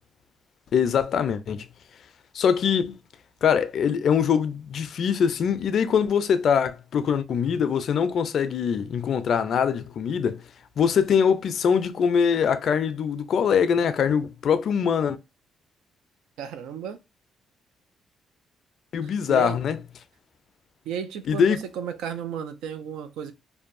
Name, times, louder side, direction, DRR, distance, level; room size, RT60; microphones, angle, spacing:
voice 1, 0.7-1.7 2.3-3.0 3.4-10.4 10.8-15.2 18.9-19.8 21.3-21.6, left 7 dB, 60° left, 0.3 m, -23 dB
voice 2, 16.4-17.0 19.0-19.6 20.9-23.3, right 8 dB, 90° right, 0.4 m, -33 dB
2.6 x 2.2 x 2.5 m
cardioid pair, 90°, 0 cm